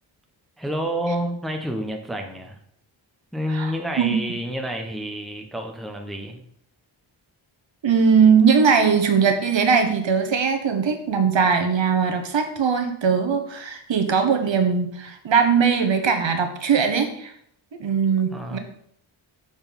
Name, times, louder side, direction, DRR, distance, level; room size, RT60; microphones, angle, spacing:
voice 1, 0.6-2.6 3.3-6.4 18.3-18.6, equal, ahead, 3 dB, 0.8 m, -29 dB
voice 2, 7.8-17.3 17.8-18.6, right 6 dB, 65° right, 6 dB, 1.1 m, -20 dB
6.7 x 4.0 x 5.2 m, 0.68 s
wide cardioid pair, 125°, 49 cm